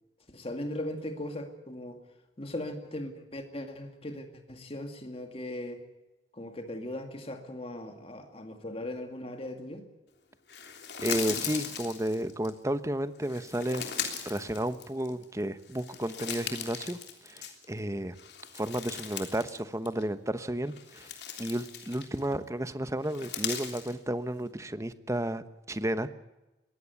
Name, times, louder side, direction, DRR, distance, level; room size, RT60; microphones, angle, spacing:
voice 1, 0.3-2.0 2.4-5.8 6.3-9.8, left 1 dB, 30° left, 5 dB, 2.2 m, -38 dB
sound 1, 10.5-12.5 13.2-15.2 15.6-17.8 18.1-19.6 19.9-20.0 20.6-22.3 23.0-23.9, left 8 dB, 60° left, 3.3 m, -38 dB
voice 2, 11.0-17.0 17.2-18.1 18.5-21.1 21.4-26.1, right 1 dB, 15° right, 12 dB, 1.0 m, -32 dB
22.5 x 17.0 x 8.3 m, 1.0 s
head